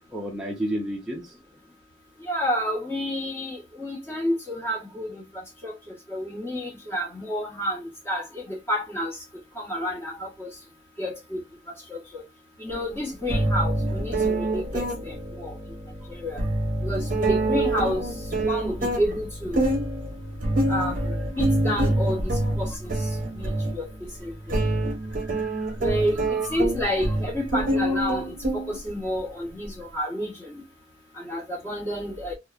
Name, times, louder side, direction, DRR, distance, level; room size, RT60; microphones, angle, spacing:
voice 1, 0.0-1.3 25.3-25.7 26.4-26.6 27.9-28.0, right 1 dB, 5° right, 0.5 m, -32 dB
voice 2, 2.3-5.2 5.6-5.7 6.1-9.1 9.6-10.5 11.0-11.4 11.9-12.2 12.6-15.5 16.2-16.4 16.8-18.0 18.4-19.6 20.7-21.0 21.4-22.9 23.4-23.9 24.2-24.6 25.8-30.3 31.2-32.3, equal, 10° left, 1.0 m, -29 dB
sound 1, 12.7-12.8 13.3-29.2, right 1 dB, 45° right, 0.8 m, -26 dB
2.9 x 2.1 x 2.3 m
head